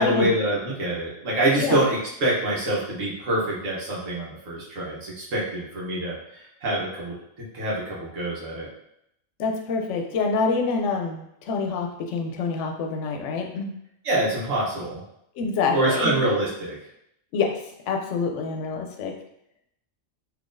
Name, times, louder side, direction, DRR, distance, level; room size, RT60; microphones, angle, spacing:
voice 1, 0.0-7.1 7.5-8.7 14.0-15.0 15.7-16.8, right 1 dB, 90° right, -6 dB, 1.3 m, -25 dB
voice 2, 9.4-13.7 15.4-16.2 17.3-17.6 17.9-19.1, left 4 dB, 75° left, 3 dB, 0.9 m, -26 dB
3.7 x 2.9 x 2.5 m, 0.77 s
omnidirectional pair, 1.3 m